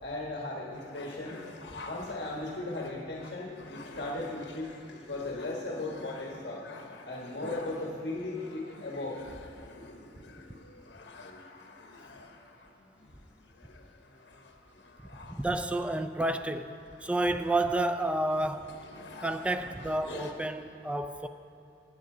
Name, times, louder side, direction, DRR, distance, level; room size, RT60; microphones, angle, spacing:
voice 1, 0.0-1.4 1.8-6.6 7.0-9.2, left 2 dB, 65° left, -2 dB, 1.3 m, -37 dB
sound 1, 0.7-20.3, left 3 dB, 85° left, 1.0 m, -49 dB
voice 2, 15.3-16.7 17.0-18.7 19.2-21.3, right 1 dB, 5° right, 9 dB, 0.4 m, -30 dB
19.0 x 9.1 x 3.8 m, 2.6 s
head